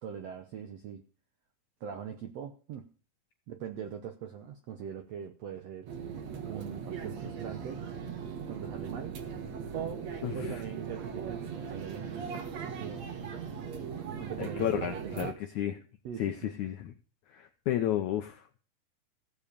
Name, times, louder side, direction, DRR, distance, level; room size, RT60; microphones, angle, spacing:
voice 1, 0.0-1.0 1.8-2.9 3.5-5.9 6.4-7.8 8.5-9.2 9.7-10.1 10.3-13.0 14.2-15.3 16.0-16.5, right 8 dB, 75° right, 7 dB, 1.5 m, -41 dB
sound 1, 5.9-15.3, right 7 dB, 55° right, 2.5 m, -39 dB
voice 2, 10.2-10.6 14.4-15.8 16.2-16.9 17.3-18.5, left 12 dB, 75° left, 7 dB, 1.8 m, -32 dB
15.5 x 7.5 x 6.8 m, 0.38 s
omnidirectional pair, 4.2 m